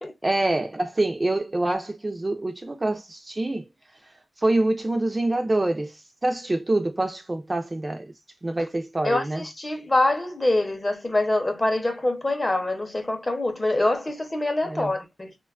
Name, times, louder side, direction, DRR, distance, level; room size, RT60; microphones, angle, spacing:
voice 1, 0.2-3.6 4.4-8.1 8.4-9.4 14.6-14.9, right 2 dB, 25° right, 0.4 m, -26 dB
voice 2, 9.0-15.4, left 2 dB, 20° left, 0.6 m, -25 dB
3.3 x 2.2 x 2.3 m
wide cardioid pair, 130°, 0 cm